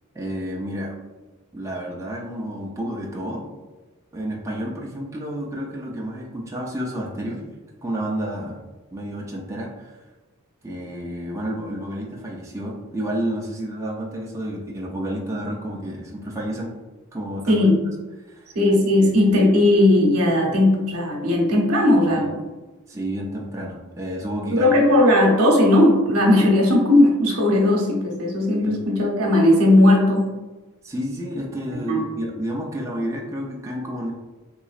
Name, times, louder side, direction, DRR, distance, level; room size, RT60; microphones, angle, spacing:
voice 1, 0.1-1.0 1.5-3.4 4.1-7.4 7.8-8.6 8.9-9.9 10.6-16.7 17.1-17.6 18.2-18.5 19.0-19.3 22.1-22.3 22.9-24.7 28.6-28.7 30.8-34.1, equal, 15° right, -2 dB, 0.4 m, -30 dB
voice 2, 18.5-22.4 24.5-30.3 31.9-32.0, left 1 dB, 85° right, 0 dB, 0.9 m, -17 dB
3.8 x 3.0 x 2.4 m, 1.2 s
head